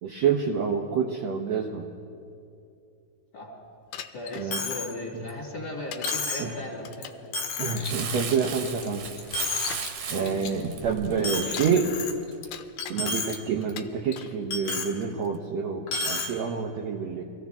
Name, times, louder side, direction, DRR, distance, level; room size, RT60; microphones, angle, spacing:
voice 1, 0.0-1.8 4.4-4.6 5.1-5.3 6.4-6.6 7.6-9.1 10.1-11.9 12.9-17.2, right 6 dB, 85° right, 1 dB, 1.5 m, -28 dB
Bicycle, 3.9-4.5 5.9-6.3 6.8-7.3 8.4-8.5 9.2-9.9 11.2-11.8 12.3-13.0 13.6-14.3 15.0-15.4, left 11 dB, 85° left, 2.3 m, -39 dB
voice 2, 4.1-7.3 10.1-10.4, left 1 dB, 30° left, -4 dB, 2.5 m, -37 dB
Coin (dropping), 4.5-4.9 5.3-5.4 6.0-6.5 7.0-7.1 7.3-7.9 8.4-8.9 9.2-9.9 10.3-10.5 11.2-12.4 12.8-13.4 13.7-13.8 14.5-14.9 15.9-16.3, left 3 dB, 65° left, 1.7 m, -31 dB
Crumpling crinkling, 7.8-12.4 12.9-13.0, right 6 dB, 65° right, 2.1 m, -36 dB
24.5 x 15.0 x 3.5 m, 2.5 s
omnidirectional pair, 4.2 m